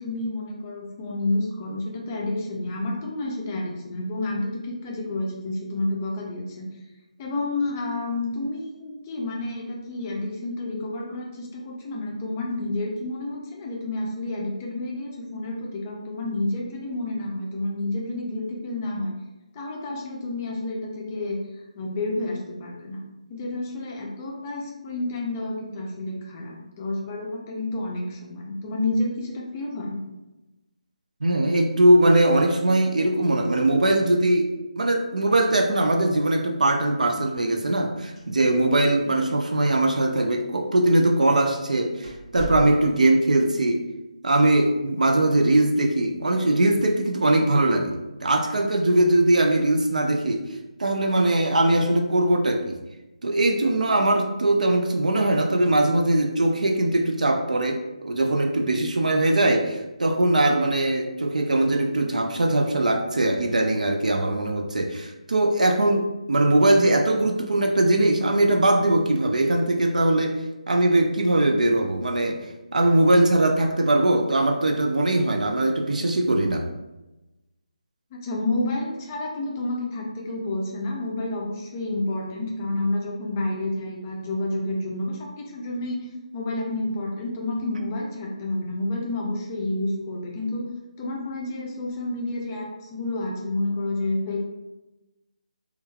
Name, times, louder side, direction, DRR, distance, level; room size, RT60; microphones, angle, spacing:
voice 1, 0.0-6.7 7.2-19.1 19.5-21.4 21.8-23.0 23.3-30.0 78.1-90.7 91.0-94.4, left 2 dB, 20° left, -1 dB, 0.4 m, -29 dB
voice 2, 31.2-43.9 44.2-47.9 48.2-50.4 50.8-52.8 53.2-76.7, right 1 dB, 80° right, 3 dB, 0.4 m, -21 dB
sound 1, 38.1-38.8 39.0-39.1 39.9-40.0 40.8-41.0 41.4-41.5 42.0-43.2, right 4 dB, 45° right, 0.9 m, -35 dB
3.0 x 2.3 x 2.2 m, 1.0 s
figure-of-eight pair, 160°, 4 cm